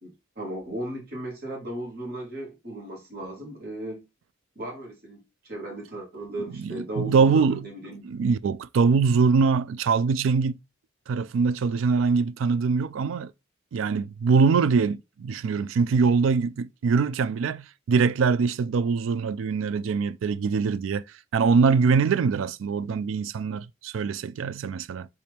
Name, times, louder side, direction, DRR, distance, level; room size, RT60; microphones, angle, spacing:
voice 1, 0.0-4.0 4.6-8.0, right 1 dB, 50° right, 2.2 m, -36 dB
voice 2, 6.6-7.6 8.0-10.6 11.1-13.3 13.7-21.0 21.3-25.1, right 5 dB, 75° right, 0.3 m, -23 dB
4.2 x 3.3 x 3.4 m
head